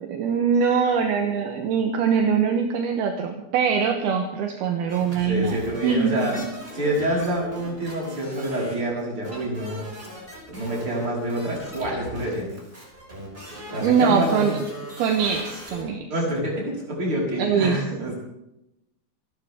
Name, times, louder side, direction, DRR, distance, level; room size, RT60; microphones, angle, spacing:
voice 1, 0.1-6.5 13.8-14.6 15.0-16.1 17.4-18.0, right 6 dB, 70° right, 4 dB, 2.6 m, -23 dB
sound 1, 4.9-15.8, equal, 10° right, 5.6 m, -40 dB
voice 2, 5.2-6.4 6.7-9.8 10.5-12.6 13.7-14.5 16.1-18.1, right 1 dB, 25° right, -4 dB, 5.4 m, -27 dB
27.5 x 12.5 x 3.7 m, 0.90 s
omnidirectional pair, 5.4 m